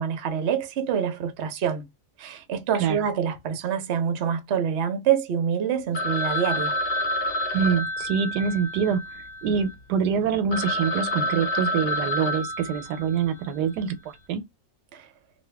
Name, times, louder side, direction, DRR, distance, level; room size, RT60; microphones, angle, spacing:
voice 1, 0.0-1.8 2.2-6.7 14.9-15.1, right 8 dB, 55° right, 0.8 m, -26 dB
Telephone, 5.9-9.7 10.2-10.3 10.5-13.4, left 1 dB, 80° left, 0.5 m, -29 dB
voice 2, 7.5-9.0 9.4-13.9 14.3-14.4, right 7 dB, 85° right, 1.2 m, -25 dB
2.9 x 2.7 x 3.3 m
omnidirectional pair, 1.8 m